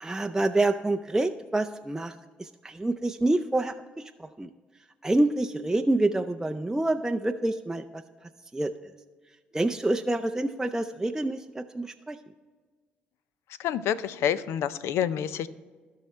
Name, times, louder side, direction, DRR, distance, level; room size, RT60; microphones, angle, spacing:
voice 1, 0.0-4.5 5.0-8.0 8.5-8.7 9.5-12.2, right 2 dB, 10° right, 5 dB, 0.5 m, -27 dB
voice 2, 13.6-15.5, left 9 dB, 70° left, 16 dB, 0.5 m, -28 dB
16.5 x 5.6 x 3.3 m, 1.4 s
hypercardioid pair, 55°, 5 cm